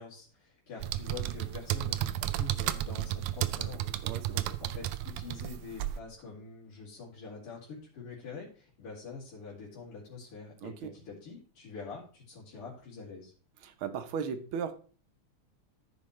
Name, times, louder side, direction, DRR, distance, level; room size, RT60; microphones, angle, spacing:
voice 1, 0.0-3.9 4.3-13.3, left 4 dB, 80° left, 3.4 m, -45 dB
sound 1, 0.8-6.0, right 13 dB, 90° right, 1.5 m, -33 dB
voice 2, 4.0-4.4 10.6-10.9 13.6-14.7, right 6 dB, 70° right, 1.7 m, -36 dB
14.0 x 5.4 x 3.2 m
omnidirectional pair, 2.4 m